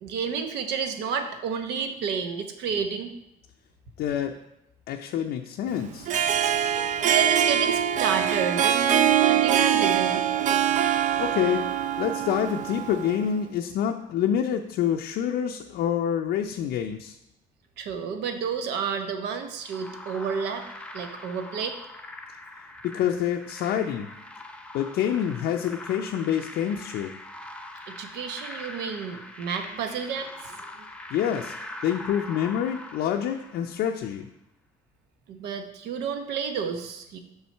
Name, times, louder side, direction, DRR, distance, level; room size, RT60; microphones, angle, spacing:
voice 1, 0.0-3.1 6.6-10.2 17.8-20.7 20.9-21.8 27.9-30.7 35.3-37.2, right 6 dB, 80° right, 7 dB, 0.9 m, -30 dB
voice 2, 4.0-4.3 4.9-6.1 11.2-11.7 12.0-17.2 22.8-24.1 24.7-27.1 31.1-31.5 31.8-34.3, left 9 dB, 70° left, 3 dB, 0.5 m, -27 dB
Harp, 5.9-13.3, right 9 dB, 50° right, 0.4 m, -23 dB
sound 1, 19.6-34.0, left 1 dB, 5° left, 0.6 m, -42 dB
6.2 x 5.6 x 4.4 m, 0.84 s
cardioid pair, 110°, 17 cm